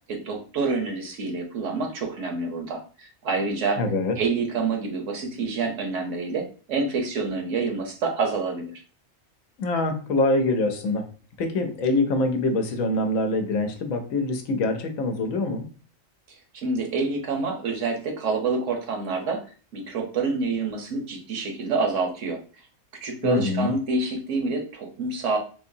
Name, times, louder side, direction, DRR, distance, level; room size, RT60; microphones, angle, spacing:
voice 1, 0.1-3.8 4.2-8.7 16.5-19.4 19.7-22.4 23.0-25.4, right 4 dB, 70° right, 3 dB, 1.1 m, -27 dB
voice 2, 3.8-4.2 9.6-11.1 11.4-15.7 23.2-23.7, left 2 dB, 80° left, 6 dB, 1.0 m, -24 dB
3.9 x 2.7 x 2.6 m, 0.38 s
omnidirectional pair, 1.4 m